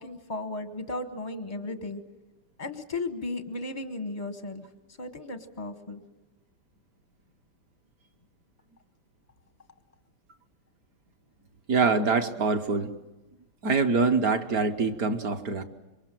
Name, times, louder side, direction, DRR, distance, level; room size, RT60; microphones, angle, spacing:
voice 1, 0.0-2.0 2.6-4.7 5.0-6.0, left 2 dB, 35° left, 8 dB, 0.6 m, -35 dB
voice 2, 11.7-12.9 13.6-15.6, right 4 dB, 55° right, 6 dB, 1.2 m, -24 dB
26.5 x 23.0 x 7.6 m, 1.1 s
omnidirectional pair, 2.4 m